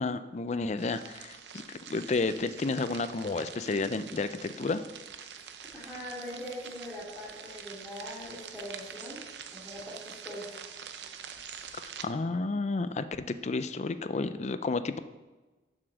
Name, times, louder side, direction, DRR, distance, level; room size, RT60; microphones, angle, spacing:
voice 1, 0.0-1.6 1.9-4.8 12.0-15.0, left 3 dB, 40° left, 12 dB, 0.4 m, -31 dB
sound 1, 0.8-12.1, right 7 dB, 70° right, 0.6 m, -45 dB
voice 2, 5.4-9.2 9.5-10.6, equal, 5° left, -10 dB, 2.5 m, -42 dB
7.2 x 6.8 x 6.3 m, 1.2 s
head